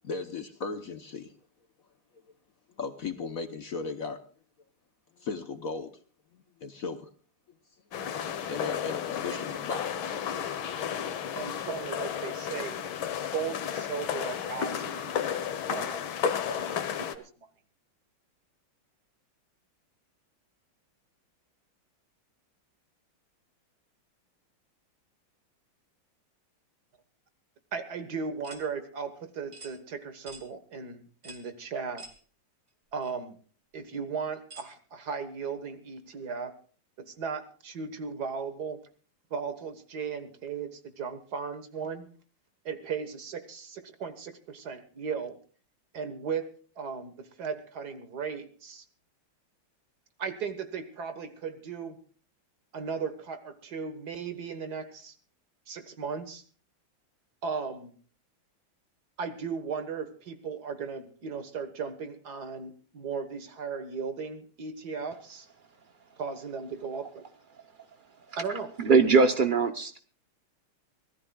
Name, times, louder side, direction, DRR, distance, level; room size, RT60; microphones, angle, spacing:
voice 1, 0.0-1.3 2.8-4.2 5.2-5.9 6.3-7.1 8.5-10.0, left 4 dB, 50° left, 8 dB, 1.1 m, -36 dB
sound 1, 7.9-17.2, left 9 dB, 75° left, 1.9 m, -33 dB
voice 2, 11.3-12.8 13.3-15.3 15.7-17.3 27.7-32.1 32.9-33.4 33.7-36.6 37.0-38.8 39.3-42.1 42.7-45.4 45.9-48.8 50.2-52.0 52.7-55.2 55.7-56.4 57.4-57.9 59.2-65.5 66.2-67.2 68.4-68.7, right 5 dB, 50° right, 10 dB, 1.8 m, -36 dB
sound 2, 28.4-28.7 29.5-29.7 30.3-30.5 31.2-31.5 32.0-32.2 33.0-33.1 34.5-34.7, right 2 dB, 30° right, 2.3 m, -46 dB
voice 3, 68.8-70.0, right 4 dB, 85° right, 8 dB, 0.4 m, -21 dB
24.5 x 17.5 x 2.3 m, 0.40 s
omnidirectional pair, 2.3 m